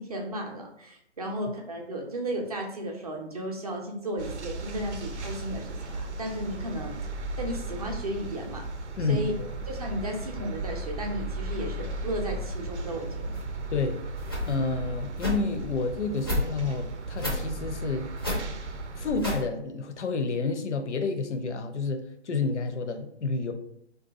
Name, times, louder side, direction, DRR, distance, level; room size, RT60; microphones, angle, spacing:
voice 1, 0.0-6.9 7.4-8.6 9.0-9.3 9.7-13.3, right 1 dB, 35° right, 1 dB, 0.5 m, -34 dB
sound 1, 4.2-19.2, right 2 dB, 80° right, 0.6 m, -36 dB
voice 2, 9.0-9.5 13.7-14.0 14.5-18.1 19.0-23.5, left 4 dB, 80° left, 7 dB, 0.6 m, -29 dB
sound 2, 13.3-13.4 14.2-14.5 15.2-15.4 16.2-16.4 17.2-17.4 18.2-18.4 19.2-19.4, left 1 dB, 20° left, 0.4 m, -30 dB
2.6 x 2.3 x 3.5 m, 0.73 s
figure-of-eight pair, 150°, 35 cm